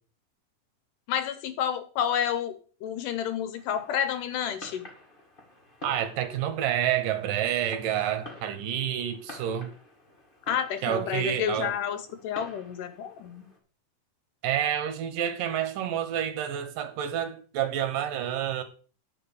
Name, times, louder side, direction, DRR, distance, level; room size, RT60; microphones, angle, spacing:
voice 1, 1.1-4.9 10.5-13.4, left 9 dB, 75° left, 2.2 m, -30 dB
Fireworks, 3.5-13.6, left 1 dB, 20° left, 1.5 m, -49 dB
voice 2, 5.8-9.7 10.8-11.7 14.4-18.6, right 10 dB, 75° right, 2.7 m, -29 dB
10.0 x 4.7 x 7.0 m
omnidirectional pair, 4.1 m